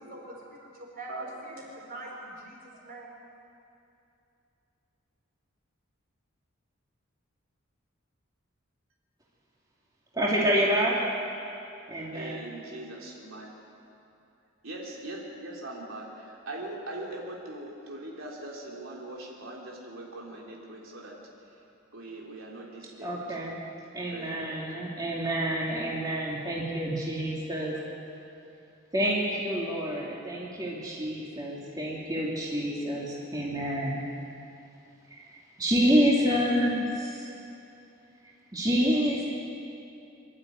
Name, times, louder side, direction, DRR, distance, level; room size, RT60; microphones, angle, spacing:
voice 1, 0.0-3.1, right 1 dB, 45° right, -2 dB, 4.9 m, -43 dB
voice 2, 10.1-11.0 11.9-12.4 23.0-23.6 23.9-27.8 28.9-34.0 35.1-35.3 35.6-37.3 38.5-39.2, equal, 20° right, -5 dB, 2.6 m, -28 dB
voice 3, 12.1-13.5 14.6-21.6 21.9-23.2 24.1-24.6, right 1 dB, 80° right, -2 dB, 3.3 m, -41 dB
25.0 x 12.0 x 9.2 m, 2.7 s
head